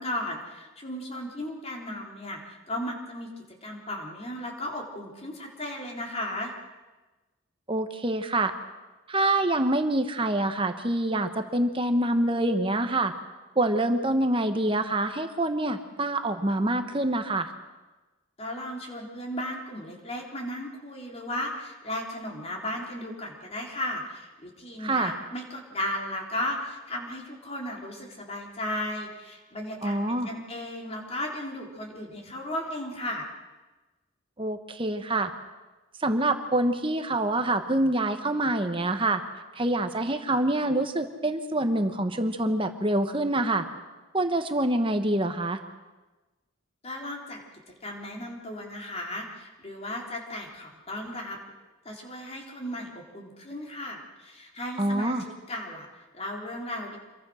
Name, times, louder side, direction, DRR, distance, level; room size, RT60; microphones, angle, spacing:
voice 1, 0.0-3.3 3.6-6.5 18.4-33.3 46.8-47.4 47.7-51.4 51.8-57.0, left 1 dB, 30° left, 1 dB, 3.9 m, -35 dB
voice 2, 7.7-8.5 9.1-13.1 13.6-17.5 24.8-25.1 29.8-30.3 34.4-35.3 36.0-39.2 39.6-43.7 44.1-45.6 54.8-55.2, right 1 dB, 25° right, 7 dB, 1.2 m, -26 dB
27.0 x 22.5 x 6.4 m, 1.2 s
head